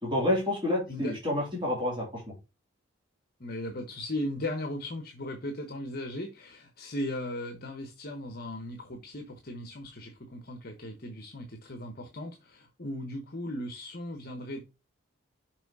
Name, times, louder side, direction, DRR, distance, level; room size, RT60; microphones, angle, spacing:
voice 1, 0.0-2.2, left 1 dB, 20° right, -3 dB, 2.7 m, -29 dB
voice 2, 3.4-14.6, left 1 dB, 45° left, 5 dB, 1.0 m, -37 dB
6.1 x 4.7 x 4.7 m, 0.28 s
head